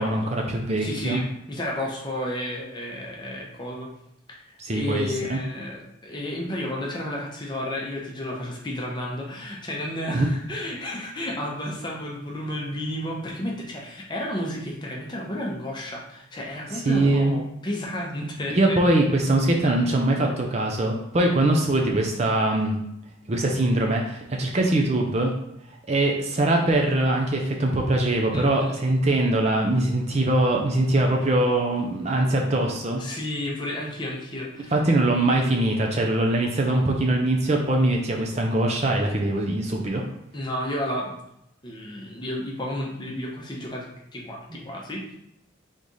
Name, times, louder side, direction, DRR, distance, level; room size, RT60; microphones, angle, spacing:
voice 1, 0.0-1.2 4.6-5.4 10.1-10.3 16.9-17.4 18.5-22.8 23.3-25.3 25.9-33.0 34.7-40.0, right 1 dB, 30° right, 1 dB, 0.5 m, -22 dB
voice 2, 0.8-3.9 4.3-18.8 28.3-28.8 33.0-34.7 40.3-41.2 41.6-45.0, left 1 dB, 20° left, -2 dB, 0.8 m, -32 dB
3.6 x 3.2 x 4.0 m, 0.81 s
head